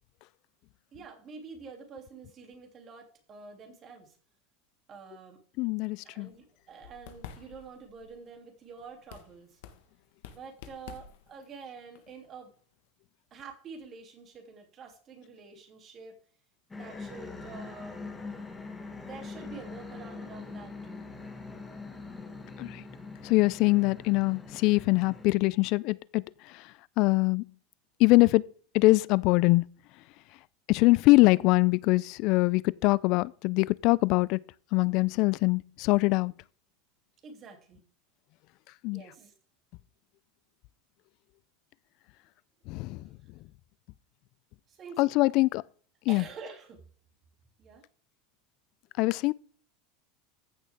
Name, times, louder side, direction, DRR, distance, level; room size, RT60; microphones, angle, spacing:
voice 1, 0.9-4.2 4.9-5.4 6.0-9.6 10.3-12.5 13.3-16.2 16.7-18.0 19.0-21.1 37.2-37.8 38.9-39.3 43.0-43.2 44.7-45.1 46.1-46.8 47.6-47.8, right 5 dB, 30° right, 2.9 m, -47 dB
voice 2, 5.6-6.3 22.6-22.8 23.2-26.2 26.5-26.6 27.0-27.5 28.0-28.5 28.7-29.6 30.7-34.4 34.7-36.3 38.8-39.0 42.7-43.0 45.0-45.6 46.1-46.2 49.0-49.3, left 23 dB, 50° left, 0.4 m, -23 dB
sound 1, 6.2-12.9, left 9 dB, 70° left, 1.4 m, -51 dB
sound 2, 16.7-25.3, left 3 dB, 10° left, 1.8 m, -43 dB
15.0 x 6.5 x 3.6 m
supercardioid pair, 145°, 0 cm